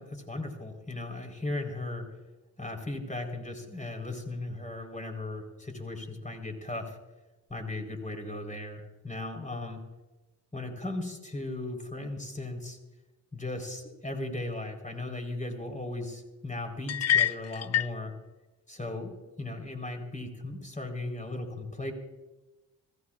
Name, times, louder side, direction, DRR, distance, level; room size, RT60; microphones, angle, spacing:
voice 1, 0.0-2.1 2.6-7.0 7.5-9.8 10.5-12.8 13.3-18.1 18.7-21.9, left 2 dB, 20° left, 4 dB, 4.2 m, -37 dB
sound 1, 16.9-18.0, left 10 dB, 40° left, 0.5 m, -26 dB
27.0 x 16.0 x 2.5 m, 1.1 s
supercardioid pair, 60°, 40 cm